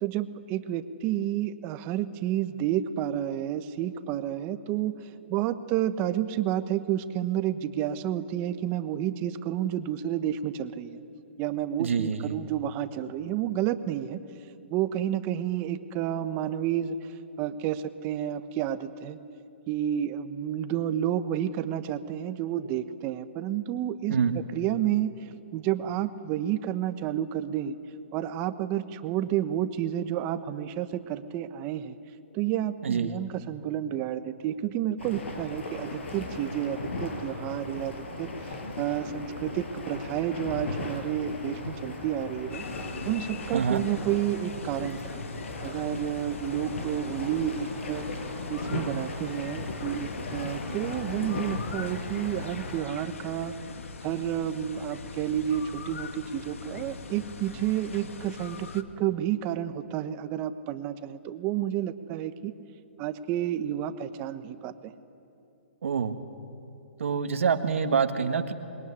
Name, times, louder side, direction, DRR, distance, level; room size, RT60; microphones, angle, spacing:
voice 1, 0.0-5.0 5.3-11.0 11.4-14.2 14.7-17.0 17.4-19.2 19.7-25.1 25.5-27.8 28.1-32.0 32.3-42.6 43.0-45.2 45.6-48.1 48.5-53.5 54.0-62.5 63.0-64.9, right 11 dB, 30° right, 11 dB, 1.2 m, -30 dB
voice 2, 11.8-12.4 24.1-24.4 32.8-33.2 43.5-43.8 65.8-66.2 67.0-68.5, right 6 dB, 75° right, 6 dB, 1.8 m, -26 dB
sound 1, 35.0-52.8, left 2 dB, 65° left, 6.0 m, -37 dB
sound 2, 42.5-58.8, left 4 dB, 85° left, 1.9 m, -41 dB
26.5 x 22.0 x 9.8 m, 2.7 s
hypercardioid pair, 150°, 7 cm